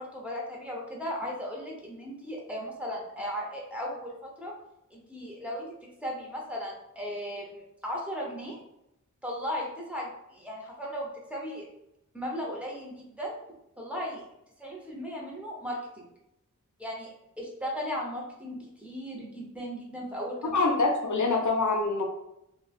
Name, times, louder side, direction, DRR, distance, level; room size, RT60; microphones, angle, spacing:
voice 1, 0.0-4.5 4.9-8.6 9.2-11.7 12.1-13.4 13.8-14.2 14.6-16.1 16.8-20.5, equal, 5° right, -4 dB, 0.8 m, -36 dB
voice 2, 20.5-22.0, left 3 dB, 65° left, 1 dB, 0.5 m, -25 dB
3.0 x 2.1 x 2.4 m, 0.83 s
wide cardioid pair, 40°, 32 cm